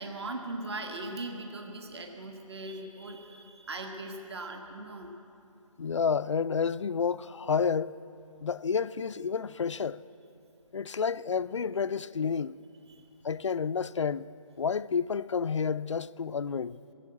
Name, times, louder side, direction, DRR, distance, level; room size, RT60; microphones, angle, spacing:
voice 1, 0.0-5.1 12.9-13.1, right 2 dB, 45° right, 1.4 m, -39 dB
voice 2, 5.8-8.0 8.4-10.0 10.7-12.5 13.2-14.3 14.6-16.8, left 6 dB, 55° left, 0.4 m, -30 dB
20.5 x 7.9 x 8.3 m
figure-of-eight pair, 165°, 18 cm